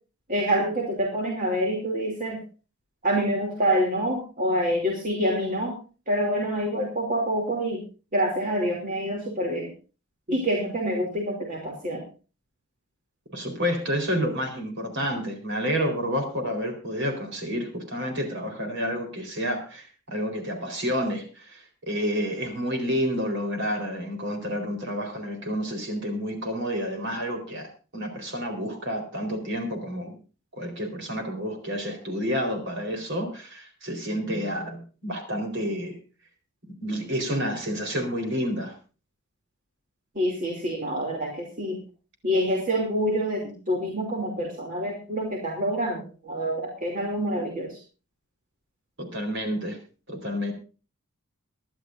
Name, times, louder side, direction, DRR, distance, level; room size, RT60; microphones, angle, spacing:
voice 1, 0.3-2.4 3.0-5.8 6.1-7.8 8.1-9.7 10.3-12.0 40.1-41.8 42.2-47.8, equal, 35° right, -1 dB, 2.8 m, -26 dB
voice 2, 13.3-30.2 30.5-36.0 36.8-38.8 49.0-49.8 50.1-50.5, equal, 55° right, 4 dB, 4.1 m, -29 dB
24.5 x 11.0 x 2.6 m, 0.35 s
head